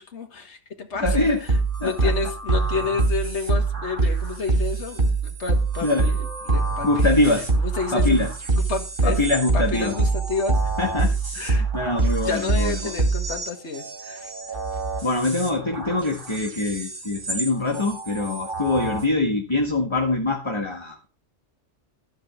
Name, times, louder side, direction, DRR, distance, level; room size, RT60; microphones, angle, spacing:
voice 1, 0.0-1.3 1.8-6.2 6.5-7.1 7.6-8.2 8.7-9.2 9.5-10.6 11.4-11.6 12.2-14.3, left 4 dB, 60° left, 2.0 m, -30 dB
voice 2, 1.0-1.4 1.8-2.1 5.8-6.2 6.8-7.5 7.9-8.3 9.0-10.0 10.8-12.9 15.0-21.1, left 2 dB, 20° left, 1.6 m, -24 dB
sound 1, 1.0-17.5 17.7-19.0, right 3 dB, 45° right, 3.2 m, -25 dB
13.5 x 5.2 x 7.3 m
omnidirectional pair, 1.3 m